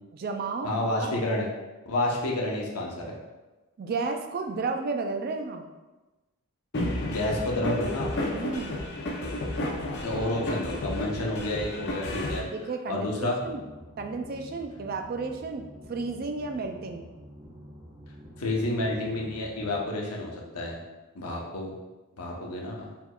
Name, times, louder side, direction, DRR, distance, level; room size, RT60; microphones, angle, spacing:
voice 1, 0.1-1.2 3.8-5.7 8.3-8.8 12.5-13.6 14.0-17.1, right 4 dB, 40° right, 5 dB, 0.3 m, -33 dB
voice 2, 0.6-1.5 1.9-3.2 7.1-8.1 10.0-12.5 12.9-13.4 18.4-20.8 21.1-21.7 22.2-22.9, left 1 dB, 90° left, -2 dB, 0.8 m, -29 dB
sound 1, 6.7-12.4, left 1 dB, 50° left, 0.6 m, -32 dB
sound 2, 13.4-19.8, equal, 20° right, 0.9 m, -48 dB
4.5 x 3.6 x 2.3 m, 1.1 s
head